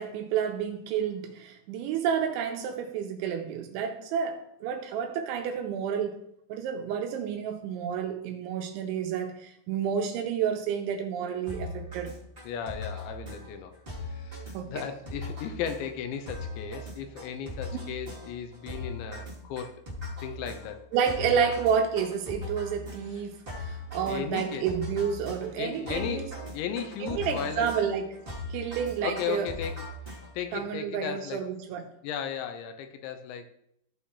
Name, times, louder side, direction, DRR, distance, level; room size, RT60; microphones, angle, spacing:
voice 1, 0.0-6.2 6.5-12.1 14.5-14.8 17.7-17.9 20.9-26.2 27.0-28.2 28.5-29.5 30.5-31.9, right 7 dB, 85° right, 3.0 m, -30 dB
sound 1, 11.5-30.6, left 1 dB, 20° right, 1.6 m, -40 dB
voice 2, 12.4-13.8 14.0-19.8 20.2-20.9 21.3-21.5 24.1-24.7 25.6-27.7 29.0-29.9 30.3-31.4 32.0-33.5, left 8 dB, 80° left, 2.9 m, -35 dB
15.0 x 5.5 x 3.2 m
omnidirectional pair, 5.5 m